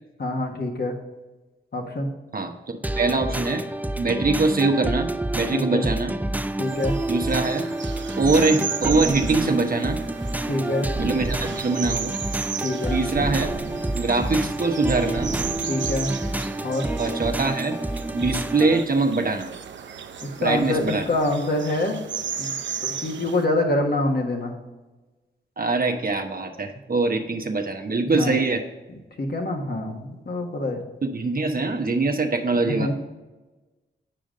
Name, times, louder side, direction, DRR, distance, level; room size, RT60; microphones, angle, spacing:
voice 1, 0.2-0.9 1.7-2.1 5.5-5.9 6.6-7.0 10.5-10.9 12.6-13.0 15.7-16.1 16.6-16.9 20.2-22.0 22.4-22.5 22.8-24.6 28.0-28.4 29.2-30.8 32.6-32.9, left 1 dB, 55° left, 2 dB, 1.7 m, -25 dB
sound 1, 2.8-18.8, right 1 dB, 10° right, 0.4 m, -29 dB
voice 2, 2.9-3.6 4.0-6.2 7.1-7.7 8.2-10.0 11.0-12.1 12.9-13.5 13.9-15.3 17.0-17.8 18.1-19.5 20.4-21.0 25.6-28.6 31.0-32.9, right 3 dB, 45° right, 4 dB, 1.0 m, -23 dB
sound 2, 6.6-23.4, right 7 dB, 65° right, 0.6 m, -35 dB
sound 3, 8.8-9.7 10.9-11.9 13.1-14.2 15.2-16.0, right 3 dB, 30° right, 1.2 m, -33 dB
8.6 x 5.1 x 3.8 m, 1.2 s
supercardioid pair, 40°, 21 cm